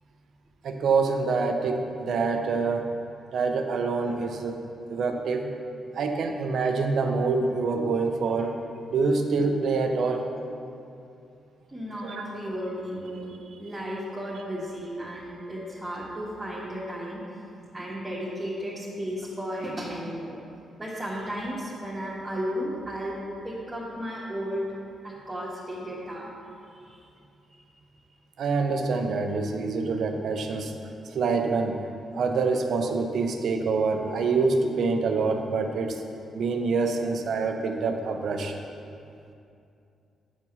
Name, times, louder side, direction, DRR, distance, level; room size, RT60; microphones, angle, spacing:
voice 1, 0.6-2.9 3.3-4.6 4.9-5.5 5.9-8.6 8.9-10.3 12.0-12.3 28.4-30.7 31.1-31.8 32.1-36.0 36.3-38.6, right 4 dB, 70° right, 5 dB, 0.7 m, -26 dB
voice 2, 11.7-17.2 17.7-20.4 20.8-23.1 23.4-24.7 25.0-26.3 26.7-27.0, equal, 20° right, -8 dB, 1.6 m, -34 dB
8.4 x 4.7 x 5.5 m, 2.6 s
cardioid pair, 70°, 0 cm